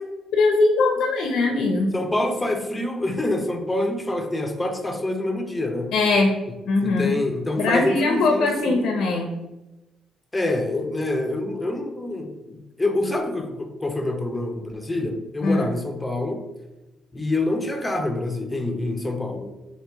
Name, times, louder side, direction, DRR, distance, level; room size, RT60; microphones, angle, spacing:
voice 1, 0.3-1.9 5.9-6.3 6.7-7.1 7.6-9.3 15.4-15.7, left 3 dB, 80° left, 2 dB, 0.5 m, -21 dB
voice 2, 1.9-5.9 6.8-8.9 10.3-16.4 17.1-19.5, left 2 dB, 15° left, 4 dB, 0.6 m, -26 dB
3.0 x 2.9 x 4.5 m, 1.0 s
cardioid pair, 90°, 0 cm